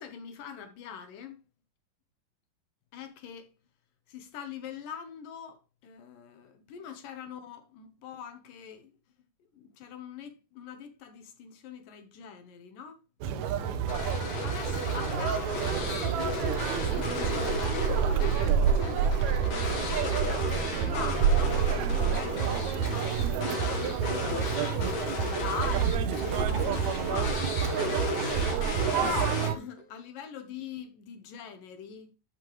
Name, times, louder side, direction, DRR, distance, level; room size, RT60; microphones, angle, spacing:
voice 1, 0.0-1.4 2.9-3.5 4.1-8.9 9.5-13.0 13.5-13.9 14.4-16.4 16.7-19.4 19.8-27.5 28.4-32.1, left 7 dB, 65° left, 2.7 m, -43 dB
Conversation, 13.2-29.6, right 7 dB, 85° right, 1.6 m, -28 dB
sound 1, 13.9-29.8, left 3 dB, 50° left, 3.6 m, -35 dB
11.5 x 6.8 x 3.1 m
omnidirectional pair, 4.5 m